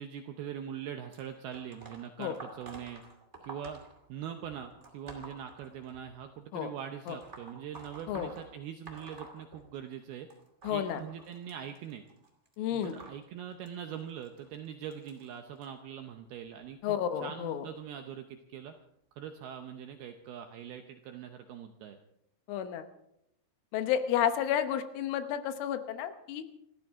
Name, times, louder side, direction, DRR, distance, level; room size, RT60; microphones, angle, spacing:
voice 1, 0.0-3.0 3.4-3.8 4.1-10.3 10.7-12.0 12.7-18.7 19.1-22.0, right 9 dB, 80° right, 6 dB, 2.3 m, -42 dB
sound 1, 1.1-6.2 7.0-10.0 10.3-15.7 16.4-16.7 17.7-17.8 18.7-18.8 19.5-19.6, right 2 dB, 30° right, 1.3 m, -50 dB
voice 2, 10.7-11.0 12.6-12.9 16.8-17.7 22.5-22.8 23.7-26.4, left 10 dB, 85° left, 9 dB, 3.6 m, -31 dB
28.0 x 13.5 x 3.7 m, 0.77 s
omnidirectional pair, 5.5 m